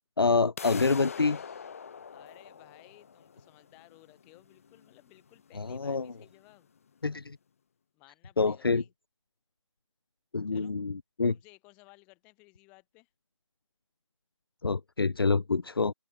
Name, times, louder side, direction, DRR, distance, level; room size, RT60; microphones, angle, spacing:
voice 1, 0.2-1.4 5.6-6.1 7.0-7.4 8.4-8.8 10.3-11.3 14.6-15.9, left 4 dB, 45° left, 0.9 m, -27 dB
sound 1, 0.6-6.5, left 6 dB, 25° left, 4.8 m, -44 dB
voice 2, 2.1-6.7 7.9-8.9 10.5-10.7 11.3-13.1, left 27 dB, 10° left, 5.8 m, -58 dB
figure-of-eight pair, 170°, 17 cm